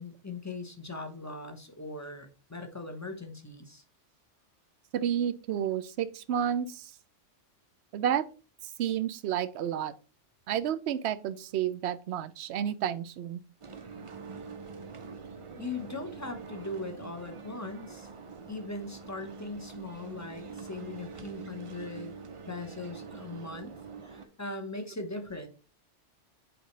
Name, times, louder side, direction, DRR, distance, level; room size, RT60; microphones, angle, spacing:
voice 1, 0.0-3.8 15.5-18.1 18.5-22.1 22.5-23.7 24.0-25.5, left 2 dB, 15° left, 0.8 m, -40 dB
voice 2, 4.9-6.9 7.9-8.2 8.8-9.9 10.5-13.4, right 9 dB, 70° right, 0.8 m, -30 dB
sound 1, 13.6-24.3, right 4 dB, 35° right, 0.5 m, -45 dB
8.0 x 4.6 x 3.1 m
omnidirectional pair, 1.2 m